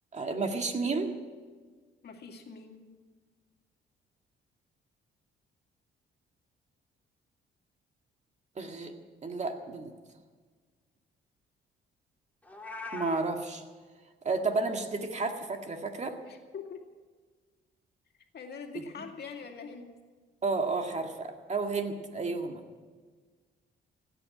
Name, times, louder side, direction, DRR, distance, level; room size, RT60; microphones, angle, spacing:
voice 1, 0.1-1.1 8.6-8.9 9.2-9.9 12.9-13.6 14.2-16.2 18.7-18.8 20.4-22.6, right 3 dB, 35° right, 4 dB, 2.0 m, -31 dB
voice 2, 2.0-2.9 16.3-16.8 18.3-19.9, left 5 dB, 55° left, 3 dB, 2.3 m, -43 dB
Meow, 12.4-13.2, left 3 dB, 10° left, 2.2 m, -40 dB
16.0 x 9.0 x 8.8 m, 1.4 s
cardioid pair, 90°, 20 cm